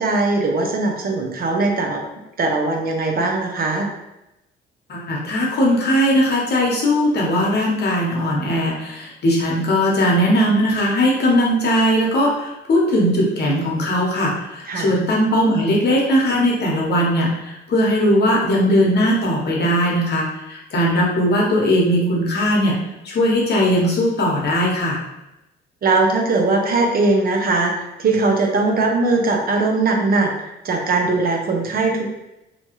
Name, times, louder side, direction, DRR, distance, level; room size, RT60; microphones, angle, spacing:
voice 1, 0.0-2.0 2.4-3.9 14.7-14.9 25.8-30.3 30.6-32.1, right 3 dB, 50° right, 2 dB, 0.6 m, -20 dB
voice 2, 4.9-22.7 23.0-25.0, equal, 55° left, -3 dB, 1.0 m, -19 dB
2.8 x 2.3 x 2.9 m, 0.90 s
cardioid pair, 90°, 20 cm